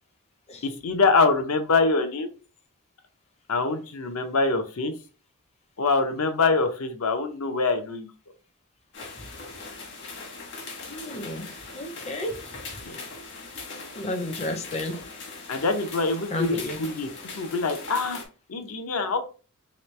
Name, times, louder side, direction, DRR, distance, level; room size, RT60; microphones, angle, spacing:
voice 1, 0.6-2.3 3.5-4.9 5.8-8.1 12.8-13.0 15.5-17.1 17.3-18.2 18.5-19.2, left 4 dB, 70° left, 7 dB, 0.6 m, -24 dB
sound 1, 8.9-18.3, left 3 dB, 55° left, 1.1 m, -40 dB
voice 2, 10.9-12.4 13.9-15.0 16.3-16.9, left 1 dB, 30° left, 4 dB, 0.5 m, -32 dB
3.2 x 3.0 x 3.1 m, 0.36 s
head